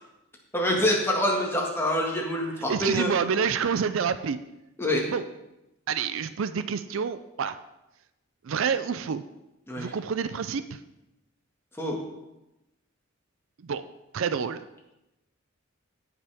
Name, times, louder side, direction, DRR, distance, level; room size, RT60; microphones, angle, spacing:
voice 1, 0.5-3.1 4.8-5.0 9.7-9.9 11.8-12.0, left 1 dB, 10° left, -1 dB, 1.8 m, -26 dB
voice 2, 2.7-4.4 5.1-5.2 5.9-7.6 8.4-9.2 9.8-10.8 13.6-13.8 14.1-14.6, right 6 dB, 65° right, 12 dB, 0.4 m, -28 dB
17.0 x 5.7 x 3.6 m, 0.95 s
head